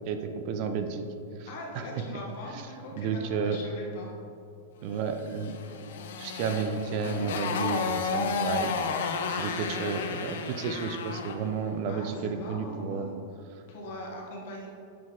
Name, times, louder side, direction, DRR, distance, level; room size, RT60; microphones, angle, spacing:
voice 1, 0.1-1.1 1.4-1.5 1.7-1.9 2.5-2.6 3.0-3.6 4.8-5.6 6.2-13.1 13.5-13.6, right 5 dB, 45° right, 7 dB, 0.4 m, -32 dB
voice 2, 1.5-4.1 11.9-13.2 13.7-14.7, left 1 dB, 55° left, -2 dB, 1.4 m, -41 dB
Motorcycle, 5.4-11.5, left 5 dB, 75° left, 0.5 m, -32 dB
7.5 x 3.9 x 3.7 m, 2.5 s
supercardioid pair, 155°, 0 cm